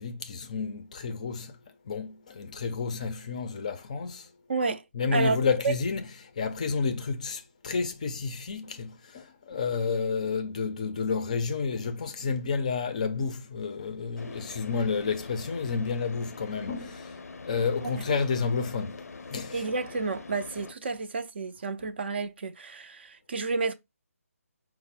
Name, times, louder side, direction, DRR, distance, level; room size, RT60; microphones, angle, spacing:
voice 1, 0.0-1.5 1.9-4.3 4.9-6.0 6.4-17.1 17.5-19.6, left 5 dB, 30° left, 0.4 m, -30 dB
voice 2, 4.5-4.8 5.1-5.4 5.6-5.7 17.8-18.1 19.5-23.7, right 4 dB, 45° right, 0.4 m, -30 dB
Car / Idling, 14.2-20.7, left 4 dB, 85° left, 0.5 m, -44 dB
4.9 x 2.0 x 4.2 m
hypercardioid pair, 165°, 8 cm